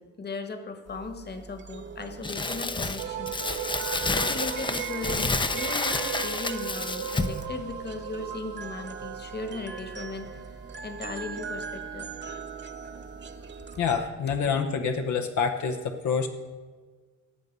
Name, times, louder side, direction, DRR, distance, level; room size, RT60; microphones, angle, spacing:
voice 1, 0.0-3.4 4.1-10.4 10.8-12.1, left 3 dB, 35° left, 8 dB, 1.5 m, -37 dB
sound 1, 0.9-14.1, right 6 dB, 40° right, 0.9 m, -41 dB
Crumpling crinkling, 2.2-7.4, left 3 dB, 15° left, 0.6 m, -29 dB
sound 2, 3.0-14.2, right 9 dB, 75° right, 1.1 m, -39 dB
voice 2, 13.8-16.3, left 6 dB, 70° left, 5 dB, 0.9 m, -27 dB
17.5 x 6.8 x 5.4 m, 1.5 s
cardioid pair, 90°, 30 cm